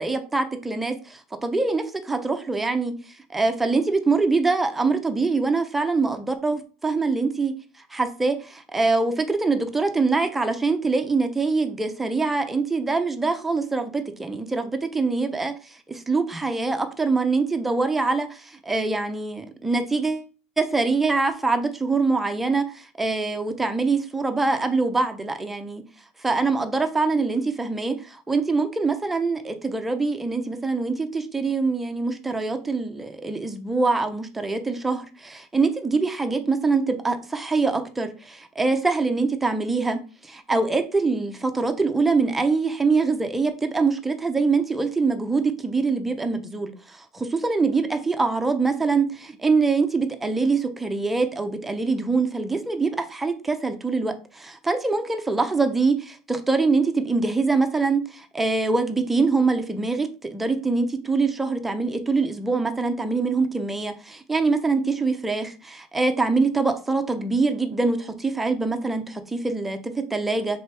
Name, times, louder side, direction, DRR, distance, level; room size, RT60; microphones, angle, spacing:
voice 1, 0.0-2.9 3.3-7.5 7.9-20.3 20.6-25.8 26.2-70.6, right 3 dB, 10° right, 6 dB, 0.5 m, -24 dB
3.3 x 3.0 x 4.6 m, 0.37 s
cardioid pair, 150°, 2 cm